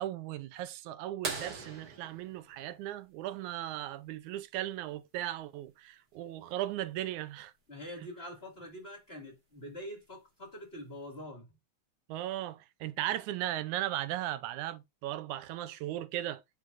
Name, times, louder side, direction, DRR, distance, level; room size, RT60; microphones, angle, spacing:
voice 1, 0.0-7.5 12.1-16.4, right 13 dB, 85° right, 2.1 m, -37 dB
sound 1, 1.2-3.7 5.6-5.7 7.9-8.0 9.7-10.0 10.8-10.9, right 4 dB, 35° right, 2.2 m, -41 dB
voice 2, 7.7-11.5, equal, 20° left, 2.0 m, -45 dB
10.5 x 5.6 x 2.5 m
omnidirectional pair, 3.4 m